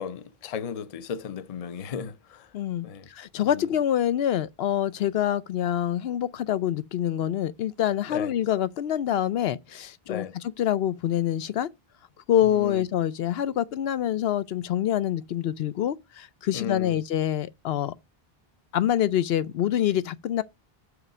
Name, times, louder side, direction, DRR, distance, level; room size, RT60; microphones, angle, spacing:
voice 1, 0.0-2.5 2.8-3.1 3.5-3.6 8.1-8.3 10.1-10.4 12.5-12.8 16.5-17.0, left 7 dB, 45° left, 0.6 m, -35 dB
voice 2, 2.5-11.7 12.3-17.9 18.7-20.4, left 11 dB, 80° left, 0.8 m, -26 dB
6.0 x 4.9 x 6.5 m
omnidirectional pair, 1.0 m